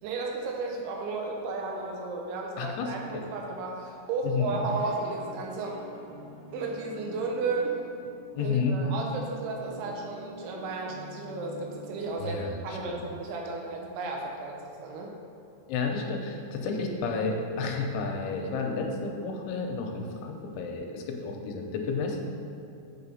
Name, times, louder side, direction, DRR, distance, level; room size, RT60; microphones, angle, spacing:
voice 1, 0.0-5.8 6.5-7.8 8.4-15.1, right 3 dB, 80° right, 0 dB, 3.2 m, -33 dB
voice 2, 2.6-3.2 4.2-4.6 8.3-8.8 12.2-13.1 15.7-22.2, left 4 dB, 85° left, 2 dB, 3.1 m, -31 dB
sound 1, 4.5-12.2, right 2 dB, 55° left, 2.0 m, -46 dB
8.6 x 4.9 x 5.4 m, 2.6 s
omnidirectional pair, 5.5 m